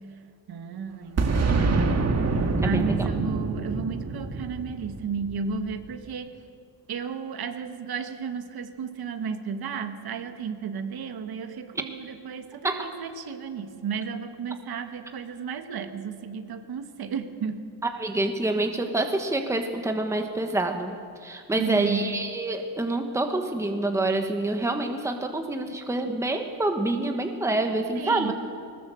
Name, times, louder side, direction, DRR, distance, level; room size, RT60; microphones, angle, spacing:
voice 1, 0.5-6.3 6.9-17.7 21.6-22.1 27.9-28.3, right 6 dB, 60° right, 7 dB, 1.7 m, -33 dB
Boom, 1.2-5.8, right 3 dB, 35° right, 1.8 m, -26 dB
voice 2, 2.6-3.1 12.6-12.9 17.9-21.0 21.2-28.3, right 2 dB, 5° right, 4 dB, 1.3 m, -27 dB
20.5 x 19.5 x 7.8 m, 2.2 s
cardioid pair, 160°, 42 cm